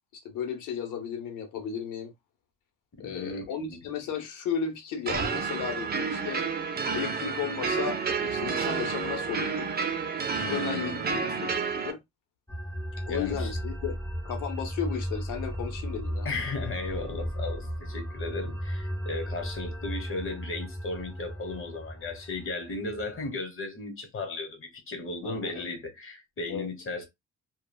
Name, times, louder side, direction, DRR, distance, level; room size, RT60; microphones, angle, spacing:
voice 1, 0.1-2.1 3.0-6.4 6.8-9.7 10.5-12.0 13.1-14.0 14.2-16.3 25.2-25.6 26.5-26.7, left 7 dB, 90° left, 0.9 m, -34 dB
voice 2, 3.0-3.8 10.4-11.4 13.1-13.5 16.2-27.0, left 3 dB, 45° left, 1.2 m, -36 dB
sound 1, 5.1-11.9, right 5 dB, 30° right, 0.6 m, -30 dB
sound 2, 12.5-23.3, equal, 10° left, 1.7 m, -35 dB
3.0 x 2.3 x 2.2 m
cardioid pair, 90°, 30 cm